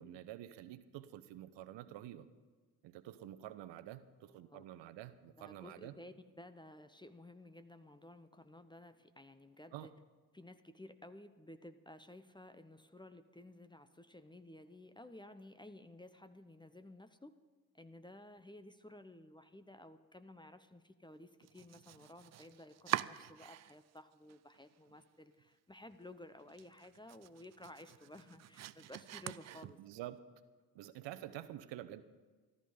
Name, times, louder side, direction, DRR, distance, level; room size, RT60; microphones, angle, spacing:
voice 1, 0.0-2.3 2.8-5.9 9.7-9.9 29.8-30.2 30.7-32.0, right 13 dB, 65° right, 13 dB, 1.0 m, -48 dB
voice 2, 5.4-9.9 10.3-17.3 17.7-29.8, left 1 dB, 10° left, 10 dB, 0.9 m, -55 dB
Domestic sounds home sounds, 21.4-24.0 24.3-25.0 25.4-25.5 25.9-26.0 26.4-30.1, right 13 dB, 35° right, 0.4 m, -44 dB
14.0 x 13.0 x 5.1 m, 1.3 s
hypercardioid pair, 45°, 47 cm